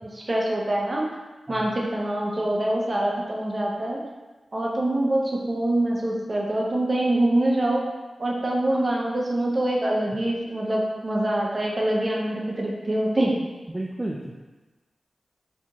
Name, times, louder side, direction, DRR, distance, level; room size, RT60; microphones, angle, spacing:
voice 1, 0.0-1.0 1.5-4.0 4.5-7.8 8.2-13.3, right 1 dB, 35° right, -2 dB, 0.8 m, -25 dB
voice 2, 13.7-14.4, right 1 dB, 20° right, -2 dB, 0.4 m, -32 dB
4.1 x 3.0 x 3.6 m, 1.2 s
cardioid pair, 65°, 0 cm